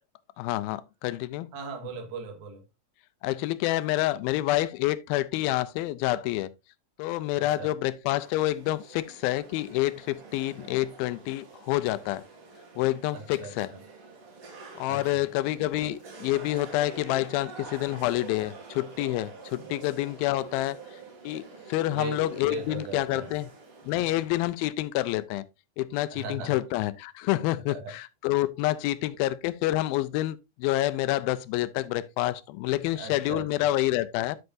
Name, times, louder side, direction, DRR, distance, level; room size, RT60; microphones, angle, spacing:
voice 1, 0.4-1.5 3.2-6.5 7.0-12.2 12.8-13.7 14.8-20.8 21.2-23.5 23.9-25.4 25.8-34.4, left 16 dB, 85° left, 2.4 m, -28 dB
voice 2, 1.5-2.6 7.4-7.7 13.1-13.5 14.9-15.3 19.6-19.7 21.9-22.2 22.5-23.3 23.9-24.0 26.1-26.6 27.7-27.9 33.0-33.5, right 3 dB, 75° right, 3.4 m, -38 dB
sound 1, 8.2-24.3, right 4 dB, 45° right, 2.7 m, -47 dB
9.8 x 7.9 x 2.6 m
omnidirectional pair, 4.2 m